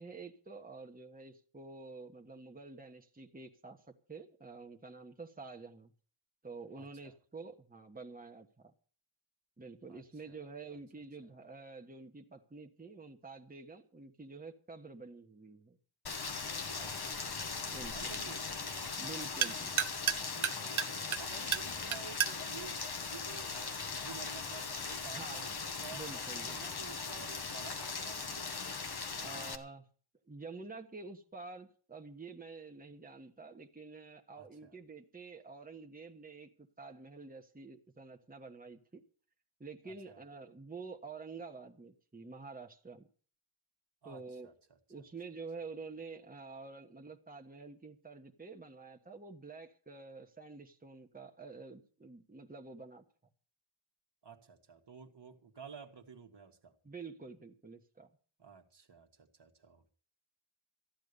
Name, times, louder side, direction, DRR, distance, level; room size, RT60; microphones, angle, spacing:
voice 1, 0.0-5.9 6.4-8.7 9.6-15.8 17.7-18.1 19.0-19.7 25.1-25.5 25.9-26.6 29.2-29.8 30.3-39.0 39.6-43.1 44.0-44.5 44.9-53.0 56.8-58.1, right 4 dB, 15° right, 2 dB, 1.4 m, -48 dB
voice 2, 6.8-7.1 9.9-10.4 16.8-17.2 17.9-18.7 20.6-22.8 23.1-26.0 26.4-28.6 34.4-34.8 39.8-40.2 44.0-44.8 54.2-56.7 58.4-59.9, right 6 dB, 55° right, 4 dB, 1.7 m, -52 dB
Rain, 16.1-29.6, left 4 dB, 50° left, 1.4 m, -39 dB
sound 1, 16.4-23.9, right 8 dB, 70° right, 1.1 m, -38 dB
14.5 x 10.5 x 6.8 m, 0.43 s
wide cardioid pair, 125°, 50 cm